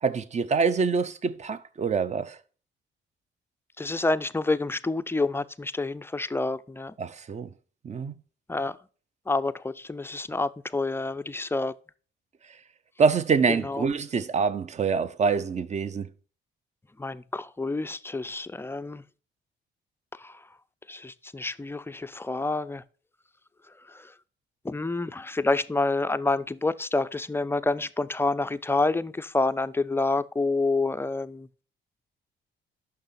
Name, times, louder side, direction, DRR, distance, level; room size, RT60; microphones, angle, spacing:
voice 1, 0.0-2.4 7.0-7.5 7.8-8.1 13.0-16.1, right 5 dB, 35° right, 0.6 m, -25 dB
voice 2, 3.8-6.9 8.5-8.8 9.3-11.7 13.5-13.9 17.0-19.0 20.2-20.4 20.9-22.8 23.9-24.1 24.6-31.5, left 3 dB, 10° left, 0.4 m, -28 dB
6.6 x 5.8 x 5.7 m
cardioid pair, 90°, 20 cm